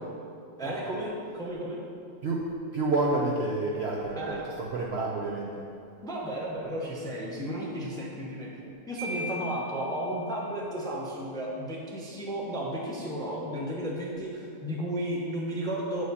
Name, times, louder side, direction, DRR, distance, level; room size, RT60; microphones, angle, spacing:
voice 1, 0.6-1.8 4.2-4.4 6.0-8.5 8.9-16.1, right 1 dB, 5° left, -4 dB, 0.6 m, -33 dB
voice 2, 2.7-5.7, right 2 dB, 60° right, -2 dB, 0.7 m, -29 dB
Marimba xylophone, 9.0-10.7, left 2 dB, 75° right, 1.2 m, -39 dB
8.1 x 4.9 x 4.1 m, 2.6 s
omnidirectional pair, 1.6 m